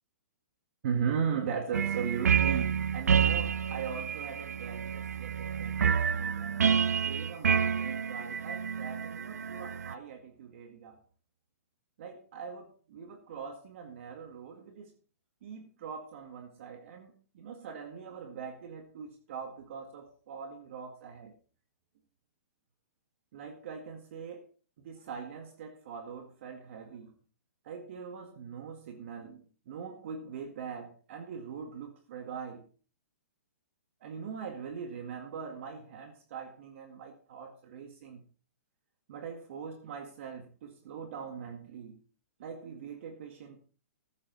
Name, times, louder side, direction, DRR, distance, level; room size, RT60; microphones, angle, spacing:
voice 1, 0.8-6.7 7.0-11.0 12.0-14.9 15.4-21.3 23.3-24.5 24.8-27.2 27.6-32.7 34.0-38.2 39.1-42.0 42.4-43.6, right 6 dB, 55° right, 2.0 m, -40 dB
sound 1, 1.7-9.9, right 7 dB, 85° right, 0.6 m, -29 dB
14.5 x 8.3 x 4.1 m
hypercardioid pair, 145°, 8 cm